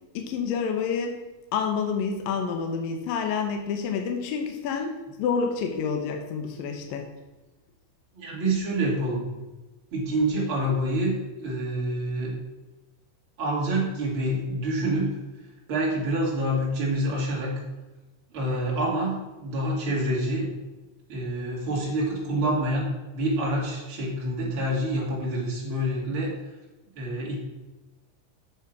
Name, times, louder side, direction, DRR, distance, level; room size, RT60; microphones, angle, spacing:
voice 1, 0.1-1.2 1.5-7.1, left 6 dB, 70° left, 4 dB, 2.5 m, -28 dB
voice 2, 8.1-9.3 9.9-11.2 11.4-12.3 13.4-15.2 15.7-17.5 18.3-20.5 21.1-26.3 27.0-27.4, right 1 dB, 35° right, -5 dB, 3.7 m, -27 dB
8.8 x 7.3 x 6.1 m, 1.1 s
omnidirectional pair, 4.6 m